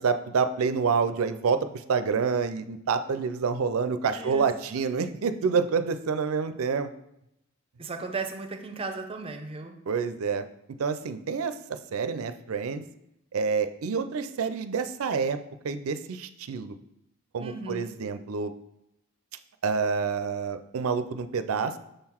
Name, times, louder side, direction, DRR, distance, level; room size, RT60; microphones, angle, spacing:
voice 1, 0.0-6.9 9.9-10.5 10.8-12.8 13.3-15.4 15.6-16.8 17.3-18.5 19.6-21.7, right 5 dB, 90° right, 11 dB, 0.4 m, -28 dB
voice 2, 4.1-4.5 4.8-4.9 7.8-9.8 17.4-17.9, right 4 dB, 25° right, 6 dB, 0.5 m, -36 dB
6.6 x 3.8 x 4.4 m, 0.82 s
head